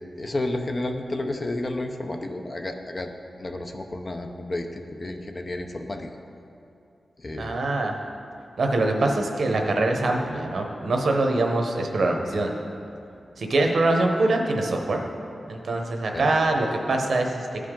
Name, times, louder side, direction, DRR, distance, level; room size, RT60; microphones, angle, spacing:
voice 1, 0.2-3.1 3.4-6.1 7.2-7.6 16.1-16.3, left 2 dB, 35° left, 4 dB, 0.6 m, -31 dB
voice 2, 7.4-7.9 8.6-12.5 13.4-15.0 15.5-17.5, right 2 dB, 65° right, 2 dB, 0.9 m, -23 dB
14.0 x 5.0 x 3.7 m, 2.7 s
wide cardioid pair, 105°, 0 cm